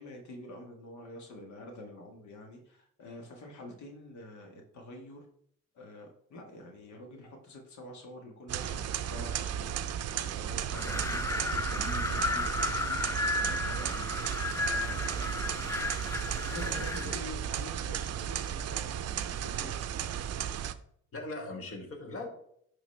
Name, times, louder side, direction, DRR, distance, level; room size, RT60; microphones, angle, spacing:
voice 1, 0.0-5.3 5.7-9.8 10.1-14.1 14.5-19.9, left 1 dB, 70° left, 1 dB, 1.5 m, -47 dB
sound 1, 8.5-20.7, right 9 dB, 55° right, 0.5 m, -34 dB
Wind, 10.7-17.2, left 3 dB, 10° left, 0.3 m, -34 dB
voice 2, 16.6-17.2 21.1-22.3, left 2 dB, 45° left, 2 dB, 1.6 m, -40 dB
10.5 x 4.1 x 3.2 m, 0.67 s
cardioid pair, 90°, 30 cm